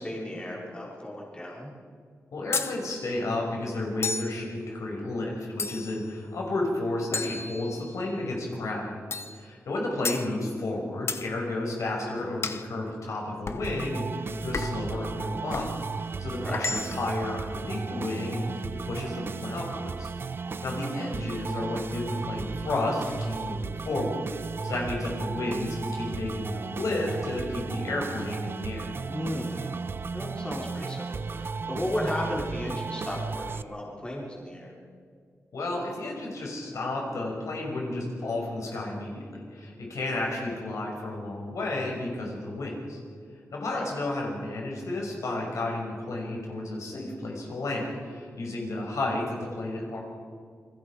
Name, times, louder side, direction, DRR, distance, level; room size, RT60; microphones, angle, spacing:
voice 1, 0.0-1.7 16.4-16.6 29.1-29.8 30.1-34.7 40.3-40.4 43.7-43.9, left 1 dB, 20° left, -3 dB, 4.4 m, -34 dB
voice 2, 2.3-8.9 9.3-15.7 16.0-20.1 20.6-24.2 24.6-28.9 35.5-43.0 43.5-50.0, left 2 dB, 75° left, -1 dB, 5.9 m, -32 dB
sound 1, 2.5-2.8 4.0-4.4 5.6-6.0 7.1-8.0 9.1-9.4 10.0-10.3 11.1-11.3 12.4-12.7 13.5-13.7 14.5-14.9 15.5-15.7 16.5-17.1, left 4 dB, 50° left, 1.1 m, -32 dB
sound 2, 13.6-33.6, right 4 dB, 45° right, 0.6 m, -35 dB
28.5 x 22.0 x 5.0 m, 2.1 s
wide cardioid pair, 140°, 5 cm